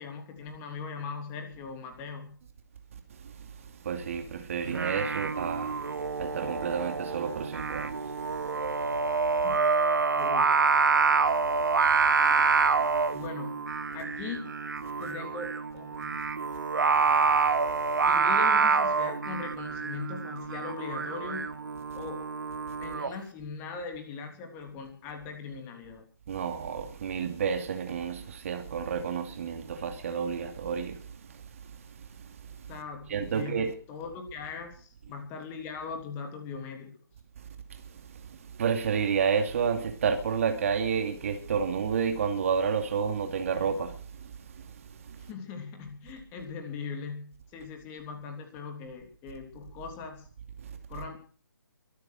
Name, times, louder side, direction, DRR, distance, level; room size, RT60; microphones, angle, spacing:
voice 1, 0.0-2.3 9.4-9.6 10.2-10.5 13.1-13.6 13.9-14.5 15.0-16.2 18.0-21.5 21.9-22.2 22.8-26.1 32.7-36.9 45.2-50.3 50.9-51.2, left 5 dB, 15° left, 3.1 m, -40 dB
voice 2, 3.9-5.7 6.2-7.9 26.3-31.0 33.1-33.7 38.6-43.9, right 6 dB, 35° right, 2.5 m, -30 dB
Singing, 4.6-23.1, right 4 dB, 60° right, 1.6 m, -27 dB
23.5 x 9.5 x 6.4 m
figure-of-eight pair, 145°, 12 cm